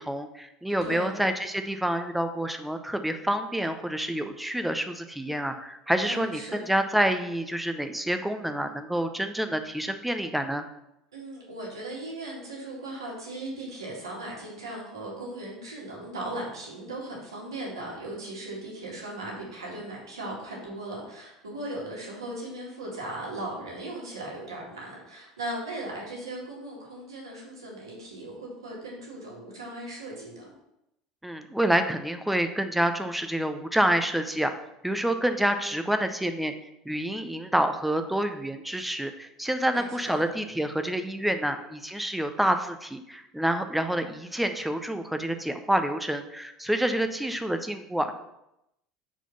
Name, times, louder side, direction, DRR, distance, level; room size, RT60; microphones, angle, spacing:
voice 1, 0.1-10.6 31.2-34.5 34.8-36.5 36.8-48.1, right 1 dB, 5° right, 8 dB, 0.6 m, -28 dB
voice 2, 0.8-1.1 6.0-6.7 11.1-30.5 39.7-40.2, right 1 dB, 85° right, -3 dB, 1.9 m, -38 dB
4.5 x 4.2 x 5.2 m, 0.84 s
hypercardioid pair, 75°, 2 cm